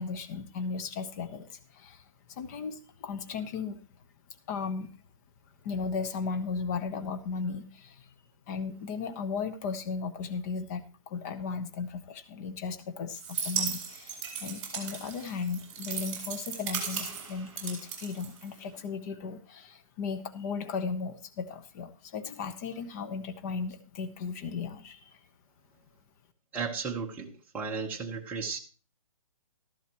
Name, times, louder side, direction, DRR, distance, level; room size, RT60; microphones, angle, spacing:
voice 1, 0.0-2.0 2.3-3.8 4.5-4.9 5.6-8.1 8.5-25.2, left 5 dB, 30° left, 9 dB, 1.0 m, -36 dB
sound 1, 13.1-18.8, right 6 dB, 25° right, 4.7 m, -36 dB
voice 2, 26.5-28.6, right 5 dB, 10° right, -2 dB, 1.1 m, -34 dB
14.0 x 11.5 x 3.0 m, 0.35 s
hypercardioid pair, 160°, 18 cm